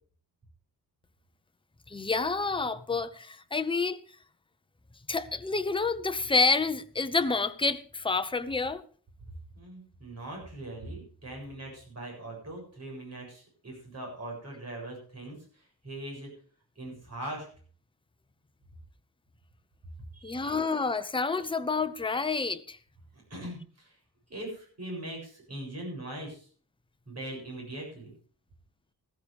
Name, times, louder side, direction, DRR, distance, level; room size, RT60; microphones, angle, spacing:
voice 1, 1.9-4.0 5.1-8.8 20.2-22.8, left 4 dB, 15° left, 0.6 m, -28 dB
voice 2, 9.5-16.3 16.8-17.5 20.1-20.9 23.3-23.9 24.3-26.5 27.1-28.1, right 1 dB, 40° right, 7.5 m, -41 dB
14.5 x 14.0 x 3.5 m
wide cardioid pair, 160°, 39 cm